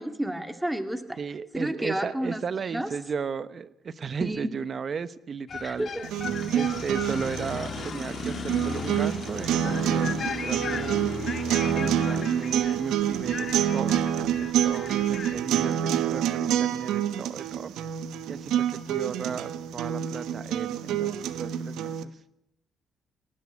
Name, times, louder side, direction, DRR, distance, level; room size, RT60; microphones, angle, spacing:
voice 1, 0.0-1.2 1.5-2.4 2.7-2.9 4.2-4.5 5.6-6.1, right 1 dB, 5° right, 8 dB, 2.1 m, -30 dB
voice 2, 1.2-5.9 6.5-11.0 11.6-17.7 18.3-22.2, right 6 dB, 45° right, 15 dB, 1.0 m, -35 dB
sound 1, 5.5-15.4, left 6 dB, 45° left, 1.5 m, -36 dB
sound 2, 6.0-22.0, right 10 dB, 85° right, 1.2 m, -27 dB
20.0 x 18.0 x 8.5 m, 0.80 s
cardioid pair, 90°, 0 cm